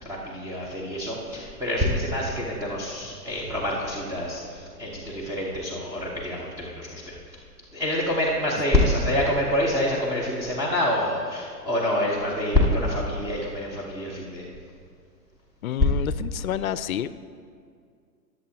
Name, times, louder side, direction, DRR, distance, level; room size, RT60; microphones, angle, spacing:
voice 1, 0.0-7.1 7.7-14.4, left 1 dB, 5° right, -7 dB, 1.1 m, -26 dB
voice 2, 15.6-17.1, left 10 dB, 60° left, 15 dB, 0.6 m, -29 dB
21.5 x 7.7 x 2.9 m, 2.2 s
hypercardioid pair, 130°, 49 cm